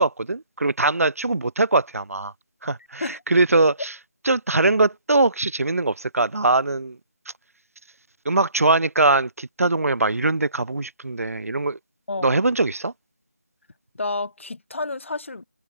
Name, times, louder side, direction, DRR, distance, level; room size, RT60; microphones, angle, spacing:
voice 1, 0.0-2.3 2.6-3.9 4.3-7.0 8.3-11.8 12.2-12.9, right 2 dB, 85° right, 0.4 m, -21 dB
voice 2, 12.1-12.4 13.9-15.4, left 3 dB, 60° left, 0.5 m, -30 dB
figure-of-eight pair, 165°, 8 cm